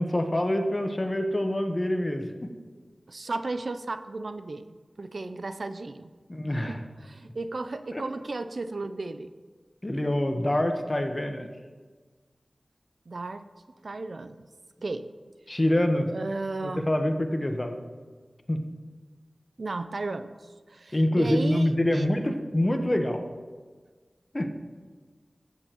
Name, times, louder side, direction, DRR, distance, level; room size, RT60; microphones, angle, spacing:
voice 1, 0.0-2.5 6.3-6.8 7.9-8.0 9.8-11.5 15.5-16.1 16.6-17.8 18.5-18.6 20.9-23.2 24.3-24.5, left 1 dB, 30° left, 5 dB, 1.1 m, -26 dB
voice 2, 3.1-6.1 6.7-9.3 13.1-13.4 13.8-14.5 14.8-15.1 16.1-16.9 19.6-22.1, right 3 dB, 65° right, 10 dB, 0.5 m, -34 dB
15.0 x 8.9 x 3.0 m, 1.5 s
wide cardioid pair, 50°, 0 cm